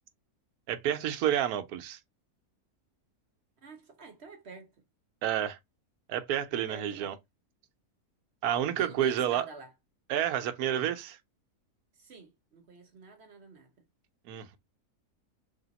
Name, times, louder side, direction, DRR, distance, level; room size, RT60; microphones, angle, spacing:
voice 1, 0.7-2.0 5.2-5.6 6.1-7.1 8.4-9.5 10.1-11.2 14.3-14.6, right 10 dB, 75° right, 1.1 m, -29 dB
voice 2, 3.6-4.7 6.5-7.2 8.8-9.7 11.9-13.7, right 4 dB, 50° right, 1.0 m, -48 dB
3.4 x 2.7 x 3.9 m
omnidirectional pair, 1.7 m